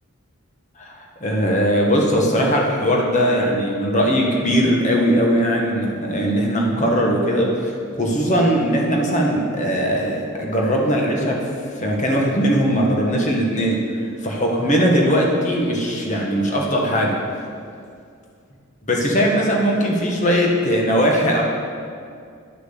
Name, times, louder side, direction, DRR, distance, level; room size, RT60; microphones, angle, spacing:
voice 1, 0.8-11.5 11.7-13.8 14.2-17.2 18.9-21.4, equal, 35° left, -1 dB, 1.4 m, -19 dB
10.0 x 6.2 x 6.8 m, 2.3 s
head